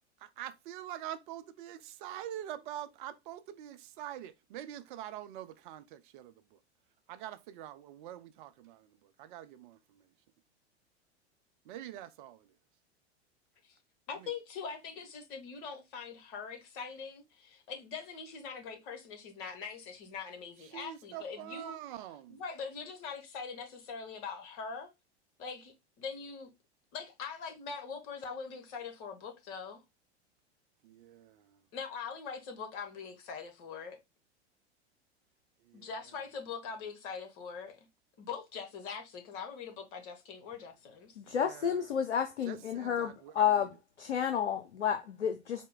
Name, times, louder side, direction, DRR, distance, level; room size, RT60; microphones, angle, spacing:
voice 1, 0.2-6.6 7.1-10.1 11.6-12.6 14.1-14.3 20.6-22.4 30.8-31.6 35.6-35.9 41.3-41.9 42.4-43.7, right 12 dB, 45° right, 0.5 m, -45 dB
voice 2, 14.1-21.8 22.3-24.9 25.4-26.5 26.9-29.8 31.7-34.0 35.7-37.8 38.2-41.2, left 5 dB, 50° left, 1.3 m, -42 dB
voice 3, 41.2-43.7 44.0-45.7, left 8 dB, 80° left, 0.6 m, -31 dB
4.3 x 2.1 x 3.6 m
figure-of-eight pair, 85°, 34 cm